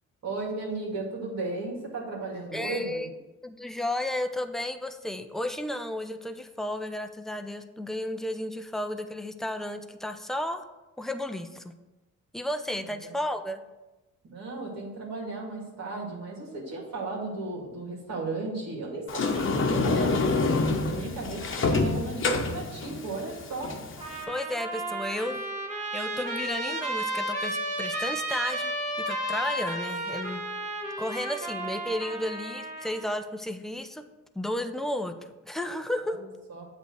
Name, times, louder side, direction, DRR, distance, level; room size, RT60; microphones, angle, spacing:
voice 1, 0.2-3.1 12.7-13.2 14.2-23.7 36.0-36.2 36.5-36.7, right 3 dB, 60° right, -4 dB, 2.4 m, -35 dB
voice 2, 2.5-3.1 3.4-10.6 11.0-11.6 12.3-13.6 24.3-25.4 25.9-28.7 29.1-30.4 31.0-34.0 34.4-35.2 35.4-36.2, left 1 dB, ahead, 7 dB, 0.5 m, -33 dB
Sliding door, 19.1-24.2, left 3 dB, 40° left, 1.0 m, -27 dB
Trumpet, 24.0-33.1, right 1 dB, 25° right, 1.6 m, -33 dB
8.0 x 3.4 x 6.3 m, 1.1 s
cardioid pair, 90°, 30 cm